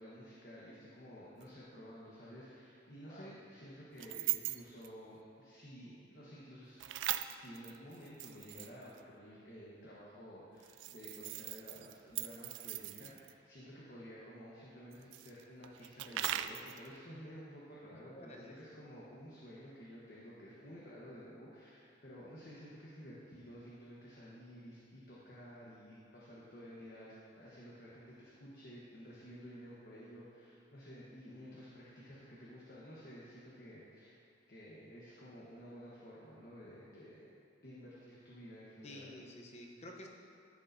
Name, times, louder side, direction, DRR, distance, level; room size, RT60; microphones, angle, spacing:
voice 1, 0.0-34.2 34.5-37.3 37.6-39.1, equal, 50° left, -7 dB, 1.2 m, -52 dB
sound 1, 1.4-1.5 4.0-4.9 6.8-9.0 10.6-13.3 14.9-16.9, right 13 dB, 80° right, 0.3 m, -40 dB
voice 2, 3.0-3.4 17.9-18.6 38.8-40.1, left 1 dB, 35° left, 1 dB, 0.8 m, -51 dB
13.0 x 6.7 x 2.7 m, 2.4 s
head